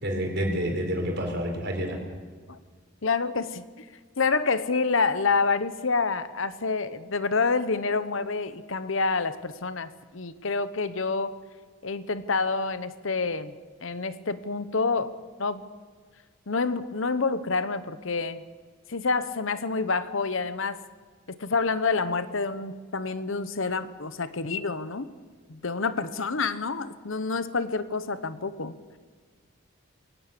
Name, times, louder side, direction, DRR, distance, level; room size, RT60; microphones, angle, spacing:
voice 1, 0.0-2.0, equal, 50° right, 2 dB, 4.6 m, -28 dB
voice 2, 3.0-3.7 4.2-11.4 11.8-13.5 13.8-15.6 16.5-18.4 18.9-20.8 21.3-25.1 25.5-28.7, left 4 dB, 65° left, 13 dB, 1.0 m, -28 dB
22.0 x 18.0 x 6.9 m, 1.6 s
head